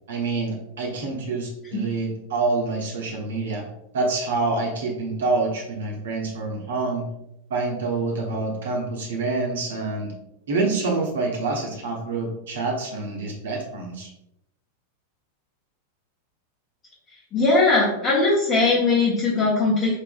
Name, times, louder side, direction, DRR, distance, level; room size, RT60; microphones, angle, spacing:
voice 1, 0.1-3.6 3.9-7.1 7.5-10.1 10.5-14.1, right 3 dB, 60° right, -1 dB, 1.0 m, -26 dB
voice 2, 17.3-20.0, left 3 dB, 30° left, -7 dB, 1.0 m, -20 dB
4.2 x 3.7 x 2.4 m, 0.84 s
figure-of-eight pair, 90°, 0 cm